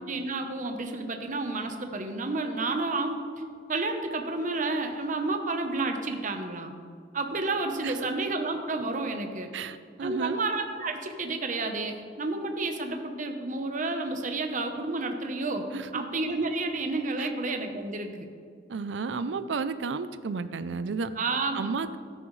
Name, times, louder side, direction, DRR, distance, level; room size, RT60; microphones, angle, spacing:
voice 1, 0.1-3.2 3.7-6.7 7.1-9.5 10.0-15.7 15.9-18.3 21.2-21.7, right 3 dB, 45° right, 5 dB, 0.9 m, -30 dB
voice 2, 9.5-10.4 15.7-16.0 17.2-17.3 18.7-21.1 21.5-22.0, right 4 dB, 80° right, 12 dB, 0.5 m, -32 dB
13.5 x 10.0 x 3.2 m, 2.2 s
head